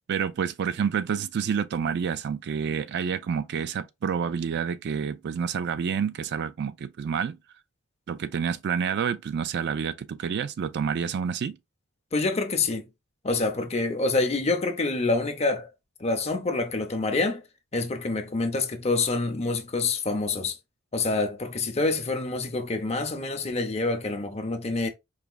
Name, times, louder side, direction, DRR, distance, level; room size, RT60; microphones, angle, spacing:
voice 1, 0.1-7.4 8.1-11.6, right 7 dB, 50° right, 0.3 m, -28 dB
voice 2, 12.1-12.9 13.2-15.7 16.0-17.4 17.7-20.6 20.9-24.9, left 3 dB, 30° left, 0.7 m, -27 dB
4.7 x 2.9 x 2.3 m
head